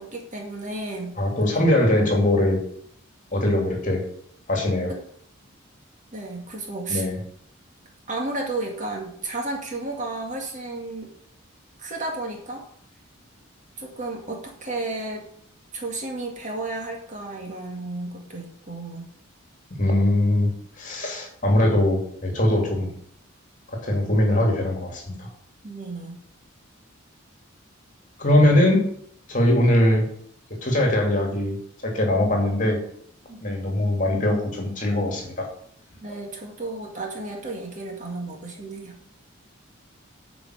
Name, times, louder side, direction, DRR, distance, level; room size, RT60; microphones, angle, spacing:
voice 1, 0.0-1.2 4.9-5.0 6.1-7.1 8.1-11.1 11.8-12.6 13.8-15.3 15.7-19.0 25.6-26.2 33.3-33.4 36.0-38.9, right 2 dB, 35° right, 0 dB, 2.1 m, -32 dB
voice 2, 1.2-2.6 3.3-4.0 4.5-4.9 6.9-7.2 19.8-20.5 20.8-22.9 23.7-25.3 28.2-28.8 29.3-30.0 30.5-32.8 33.4-35.5 36.1-36.2, left 1 dB, 40° left, 1 dB, 2.4 m, -21 dB
9.3 x 5.1 x 6.4 m, 0.66 s
head